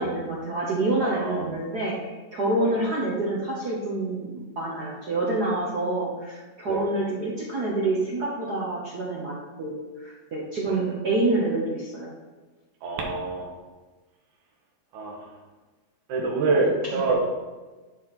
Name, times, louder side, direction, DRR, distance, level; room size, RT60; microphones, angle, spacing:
voice 1, 0.0-12.1 16.9-17.0, right 2 dB, 55° right, -4 dB, 1.1 m, -27 dB
voice 2, 1.0-1.5 2.6-2.7 6.7-6.8 10.7-10.8 12.8-13.5 14.9-15.2 16.1-17.3, right 3 dB, 90° right, 0 dB, 2.6 m, -26 dB
11.0 x 4.4 x 4.2 m, 1.2 s
omnidirectional pair, 3.3 m